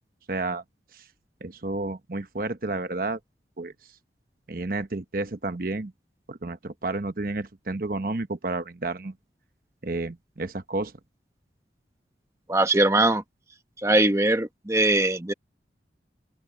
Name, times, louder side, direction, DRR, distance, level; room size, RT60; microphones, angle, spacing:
voice 1, 0.3-0.6 0.9-1.0 1.4-3.2 3.6-3.7 4.5-5.9 6.3-9.1 9.8-10.9, right 2 dB, 55° right, 1.0 m, -31 dB
voice 2, 12.5-13.2 13.8-15.3, right 2 dB, 15° right, 1.0 m, -21 dB
open air
head